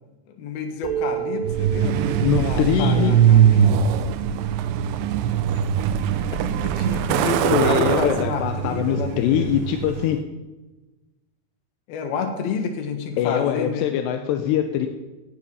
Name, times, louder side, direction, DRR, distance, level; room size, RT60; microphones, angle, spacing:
voice 1, 0.4-2.0 2.4-3.7 6.6-9.6 11.9-13.9, left 5 dB, 65° left, 4 dB, 3.2 m, -29 dB
sound 1, 0.8-4.4, right 9 dB, 70° right, 2.1 m, -32 dB
Truck, 1.4-10.2, right 9 dB, 85° right, 2.9 m, -21 dB
voice 2, 2.2-3.1 7.5-10.2 13.2-14.9, left 10 dB, 80° left, 6 dB, 2.8 m, -23 dB
17.0 x 9.9 x 5.6 m, 1.2 s
omnidirectional pair, 5.1 m